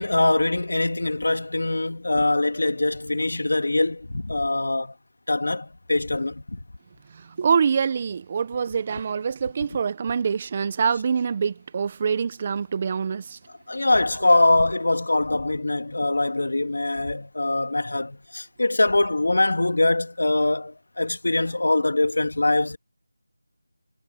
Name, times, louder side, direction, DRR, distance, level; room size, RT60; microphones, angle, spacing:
voice 1, 0.0-4.9 5.3-6.4 13.7-22.8, left 2 dB, 70° left, 2.1 m, -23 dB
voice 2, 7.4-13.4, right 6 dB, 25° right, 0.9 m, -25 dB
figure-of-eight pair, 170°, 0 cm